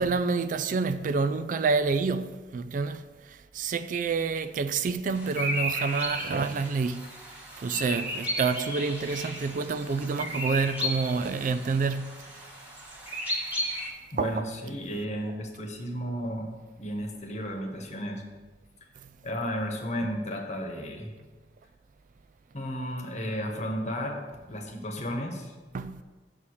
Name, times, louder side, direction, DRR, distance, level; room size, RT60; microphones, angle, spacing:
voice 1, 0.0-7.2 7.6-12.5 14.2-14.3 25.7-26.0, right 4 dB, 45° right, 0.3 m, -28 dB
sound 1, 5.1-13.9, equal, 10° right, 1.5 m, -34 dB
voice 2, 14.1-18.2 19.2-21.1 22.5-25.5, equal, 40° left, 1.2 m, -33 dB
7.0 x 4.8 x 7.0 m
head